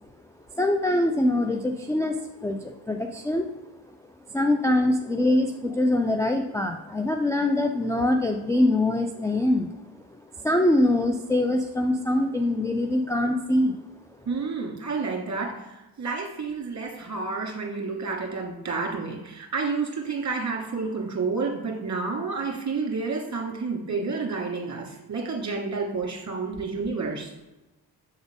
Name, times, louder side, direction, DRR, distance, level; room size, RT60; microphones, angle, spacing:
voice 1, 0.5-3.5 4.3-9.7 10.4-13.7, left 1 dB, 5° left, 2 dB, 0.4 m, -23 dB
voice 2, 14.3-27.3, right 4 dB, 35° right, 1 dB, 2.0 m, -30 dB
7.2 x 3.9 x 3.6 m, 1.0 s
supercardioid pair, 55°, 46 cm